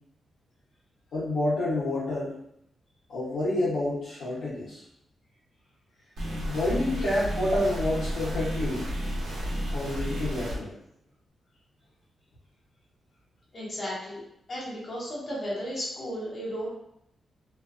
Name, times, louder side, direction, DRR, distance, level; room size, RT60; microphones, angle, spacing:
voice 1, 1.1-2.3 3.1-4.8 6.4-8.8 9.7-10.7, left 1 dB, 85° left, -11 dB, 0.9 m, -28 dB
sound 1, 6.2-10.6, equal, 90° right, 0.8 m, -32 dB
voice 2, 13.5-14.2 14.5-16.7, equal, 35° left, -7 dB, 1.1 m, -34 dB
2.5 x 2.2 x 2.4 m, 0.76 s
wide cardioid pair, 135°, 0 cm